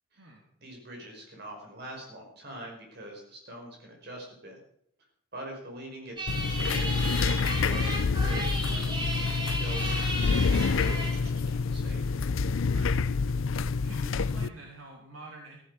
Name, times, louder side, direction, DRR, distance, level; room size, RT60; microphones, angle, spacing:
voice 1, 0.6-4.6 5.3-7.0 7.4-12.1, right 1 dB, 50° right, 1 dB, 5.3 m, -44 dB
sound 1, 6.2-11.2, right 1 dB, 20° right, 2.6 m, -34 dB
sound 2, 6.3-14.5, left 4 dB, 70° left, 0.5 m, -27 dB
voice 2, 13.8-15.6, right 2 dB, 75° right, 0 dB, 2.9 m, -47 dB
14.5 x 14.0 x 4.9 m, 0.69 s
head